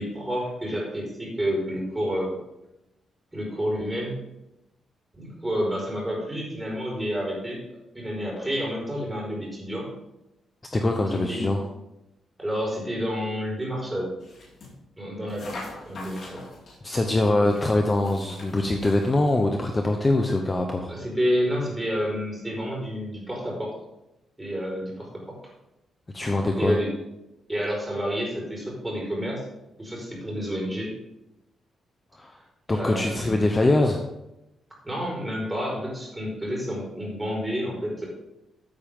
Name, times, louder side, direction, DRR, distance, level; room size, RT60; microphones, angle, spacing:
voice 1, 0.0-2.4 3.3-4.2 5.1-7.6 7.9-9.9 11.1-11.5 12.4-14.1 15.0-16.4 20.9-23.7 24.4-25.4 26.6-26.9 27.5-29.4 29.8-30.9 32.7-33.4 34.8-38.1, equal, 10° right, -3 dB, 4.9 m, -29 dB
voice 2, 10.7-11.6 16.8-20.9 26.1-26.8 32.1-32.4 32.7-34.0, left 2 dB, 20° left, 3 dB, 0.9 m, -23 dB
sound 1, 14.2-14.8 15.3-16.8 17.4-19.4, left 2 dB, 50° left, 4.7 m, -43 dB
14.0 x 8.8 x 3.7 m, 0.92 s
wide cardioid pair, 145°, 0 cm